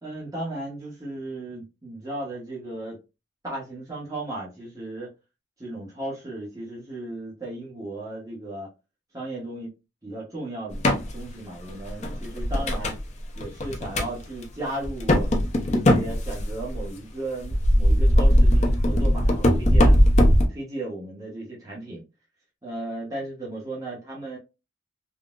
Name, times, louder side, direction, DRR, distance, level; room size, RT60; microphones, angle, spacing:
voice 1, 0.0-3.0 3.4-5.1 5.6-8.7 9.1-9.7 10.0-10.9 11.1-13.0 13.3-15.3 15.7-20.0 20.5-22.0 22.6-24.4, right 2 dB, 20° right, 0.9 m, -35 dB
sound 1, 10.7-11.1 11.7-13.0 13.4-14.1 14.4-14.5 14.8-16.8 17.4-20.5, equal, 35° left, 0.6 m, -19 dB
3.6 x 2.0 x 2.4 m
head